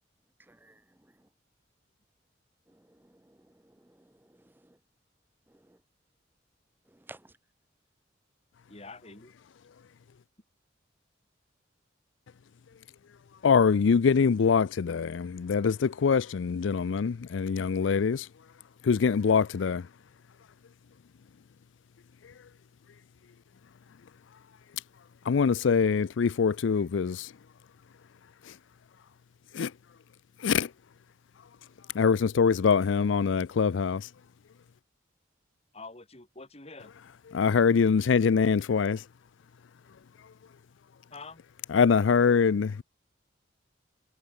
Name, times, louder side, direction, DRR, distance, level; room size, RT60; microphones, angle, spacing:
voice 1, 0.5-0.8 2.7-3.4 3.6-4.1 4.6-4.8 5.7-5.8 6.9-7.3, right 2 dB, 10° right, 0.6 m, -54 dB
voice 2, 8.7-9.3 35.7-36.9 41.1-41.4, left 3 dB, 30° left, 3.3 m, -46 dB
voice 3, 13.4-18.3 18.8-19.9 25.3-27.3 28.4-28.5 29.5-29.7 30.4-30.7 31.9-34.1 37.3-39.0 41.7-42.8, left 6 dB, 75° left, 0.4 m, -24 dB
head